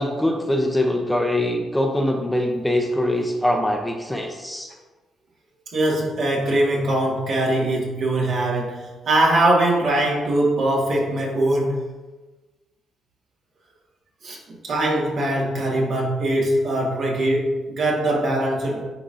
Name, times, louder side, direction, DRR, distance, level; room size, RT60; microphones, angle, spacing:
voice 1, 0.0-4.7, left 1 dB, 5° left, 2 dB, 0.7 m, -23 dB
voice 2, 5.7-11.9 14.2-14.4 14.6-18.9, right 1 dB, 60° right, -3 dB, 1.8 m, -21 dB
9.9 x 3.7 x 2.6 m, 1.2 s
cardioid pair, 90°, 0 cm